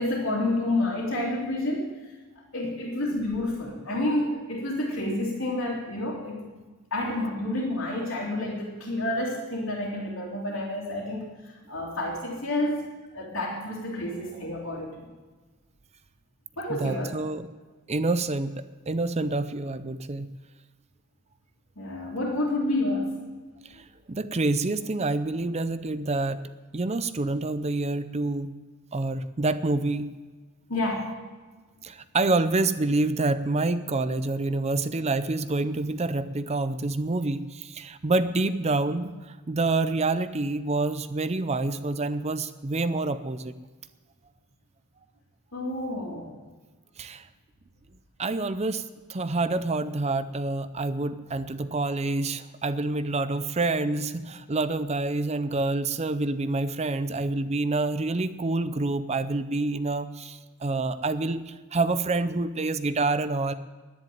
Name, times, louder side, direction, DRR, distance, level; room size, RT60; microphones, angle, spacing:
voice 1, 0.0-2.0 2.5-6.5 6.9-15.1 16.6-17.2 21.8-23.2 30.7-31.1 45.5-46.3, left 1 dB, 70° left, -5 dB, 2.8 m, -29 dB
voice 2, 14.2-14.9 16.7-17.5 17.9-20.3 23.6-28.5 28.9-30.1 31.8-43.5 47.0-47.3 48.2-48.8 49.1-63.5, right 2 dB, 30° right, 12 dB, 0.6 m, -27 dB
10.5 x 10.5 x 9.2 m, 1.3 s
head